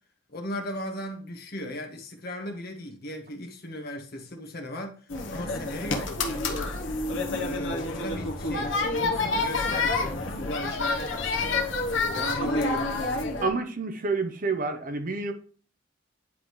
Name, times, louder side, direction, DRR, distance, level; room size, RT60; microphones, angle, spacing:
voice 1, 0.3-6.7 7.3-11.9 12.1-13.1, left 1 dB, 50° left, 1.4 m, -36 dB
sound 1, 5.1-13.5, left 3 dB, 70° left, 1.2 m, -28 dB
voice 2, 13.4-15.3, right 3 dB, 45° right, 0.8 m, -28 dB
9.7 x 3.8 x 3.2 m
head